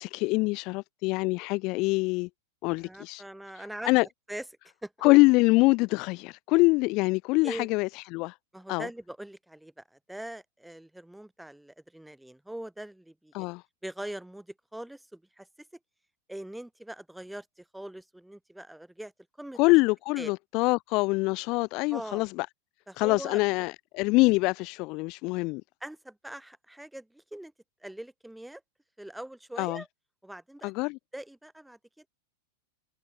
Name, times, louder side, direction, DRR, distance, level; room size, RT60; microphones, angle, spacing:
voice 1, 0.0-2.3 2.6-3.2 3.6-4.1 5.0-8.4 8.7-8.9 13.3-13.6 19.6-22.5 23.0-25.6 29.6-29.8 30.6-31.0, left 25 dB, 40° left, 0.4 m, -25 dB
voice 2, 2.8-4.4 4.8-4.9 7.4-7.7 8.5-13.5 13.8-15.5 16.3-19.1 19.4-19.6 20.2-20.3 21.9-22.2 22.9-23.4 25.8-27.5 27.8-28.6 29.0-29.9 30.2-30.7 31.1-32.1, right 1 dB, 5° right, 3.1 m, -42 dB
figure-of-eight pair, 90°, 0 cm